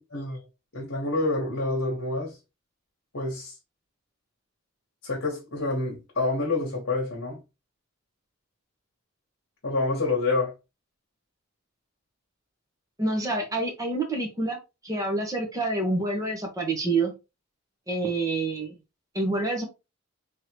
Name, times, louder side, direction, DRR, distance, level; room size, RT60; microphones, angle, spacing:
voice 1, 0.7-2.4 3.1-3.5 5.0-7.4 9.6-10.5, left 2 dB, 65° left, 1.3 m, -27 dB
voice 2, 13.0-14.6 14.8-17.1 17.9-18.8 19.1-19.6, right 2 dB, 15° right, 1.1 m, -27 dB
3.8 x 3.1 x 3.0 m
head